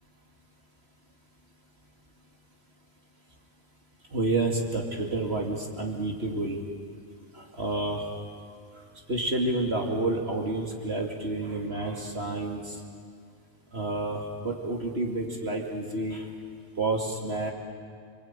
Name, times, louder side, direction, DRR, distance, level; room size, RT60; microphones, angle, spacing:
voice 1, 4.1-6.6 7.3-8.1 9.1-12.8 13.7-16.3 16.8-17.5, right 2 dB, 55° right, 1 dB, 2.7 m, -29 dB
29.5 x 22.0 x 9.0 m, 2.1 s
omnidirectional pair, 1.3 m